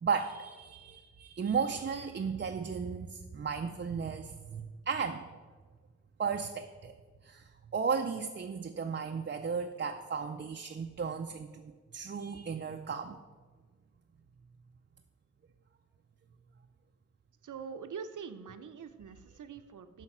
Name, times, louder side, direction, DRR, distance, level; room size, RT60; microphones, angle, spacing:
voice 1, 0.0-5.3 6.2-6.9 7.2-11.6 11.9-13.2, right 6 dB, 40° right, 5 dB, 0.4 m, -35 dB
voice 2, 17.4-20.0, right 6 dB, 80° right, 10 dB, 0.7 m, -44 dB
8.6 x 5.8 x 5.9 m, 1.5 s
wide cardioid pair, 130°, 30 cm